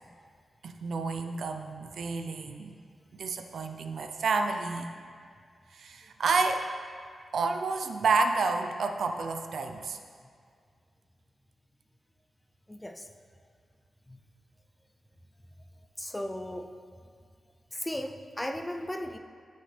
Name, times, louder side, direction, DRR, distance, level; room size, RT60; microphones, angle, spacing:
voice 1, 0.6-2.7 3.1-4.9 5.7-6.6 7.3-10.0, right 4 dB, 70° right, 6 dB, 0.6 m, -30 dB
voice 2, 12.7-13.1 14.1-14.2 16.0-16.7 17.7-19.2, left 1 dB, 10° left, 5 dB, 0.5 m, -36 dB
14.0 x 6.4 x 3.3 m, 2.1 s
wide cardioid pair, 135°, 0 cm